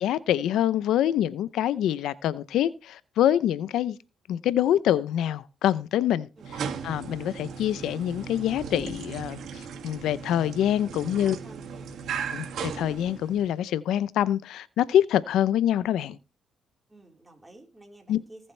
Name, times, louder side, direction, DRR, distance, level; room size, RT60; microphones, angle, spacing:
voice 1, 0.0-4.0 4.3-6.3 6.8-11.4 12.3-16.2 18.1-18.2, left 11 dB, 80° left, 0.6 m, -25 dB
sound 1, 6.4-13.6, right 6 dB, 70° right, 2.2 m, -37 dB
voice 2, 11.0-12.3 16.9-18.5, right 2 dB, 15° right, 4.3 m, -52 dB
19.0 x 7.5 x 3.3 m
cardioid pair, 90°, 0 cm